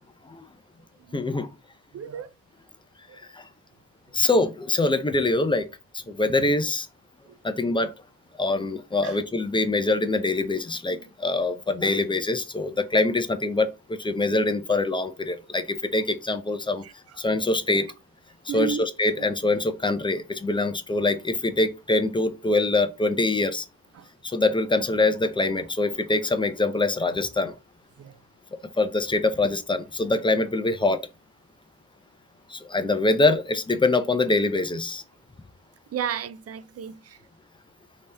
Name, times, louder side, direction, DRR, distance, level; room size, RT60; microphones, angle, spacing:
voice 1, 1.1-1.5 4.1-5.7 6.1-6.9 7.4-7.9 8.4-13.7 14.0-15.6 15.9-16.8 17.2-17.9 18.5-23.6 24.2-27.5 28.8-31.1 32.5-35.0, left 2 dB, 15° left, 0.4 m, -24 dB
voice 2, 1.9-2.3 3.1-3.2 7.3-7.6 9.0-9.2 16.8-16.9 18.5-18.9 19.2-19.3 23.9-24.1 28.0-28.2 35.9-37.2, right 8 dB, 45° right, 0.4 m, -33 dB
5.2 x 2.8 x 3.3 m
wide cardioid pair, 150°, 35 cm